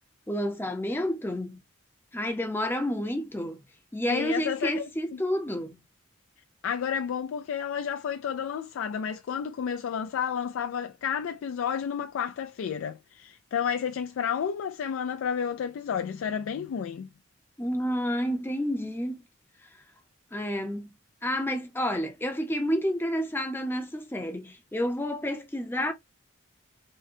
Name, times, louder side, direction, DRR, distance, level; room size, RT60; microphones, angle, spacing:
voice 1, 0.3-1.6 2.1-3.6 3.9-5.8 17.6-19.2 20.3-20.9 21.2-25.9, equal, 10° left, 0.6 m, -29 dB
voice 2, 4.1-5.2 6.6-17.1, left 7 dB, 65° left, 0.3 m, -31 dB
3.8 x 2.1 x 2.6 m
head